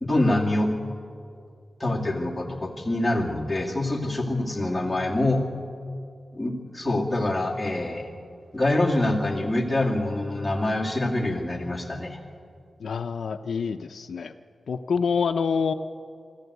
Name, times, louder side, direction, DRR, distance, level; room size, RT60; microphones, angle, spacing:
voice 1, 0.0-0.7 1.8-5.4 6.3-8.1 8.5-12.2, left 1 dB, 10° left, -2 dB, 2.4 m, -25 dB
voice 2, 12.8-14.3 14.7-15.7, left 5 dB, 80° left, 9 dB, 0.6 m, -26 dB
24.0 x 13.5 x 8.1 m, 2.3 s
wide cardioid pair, 160°, 0 cm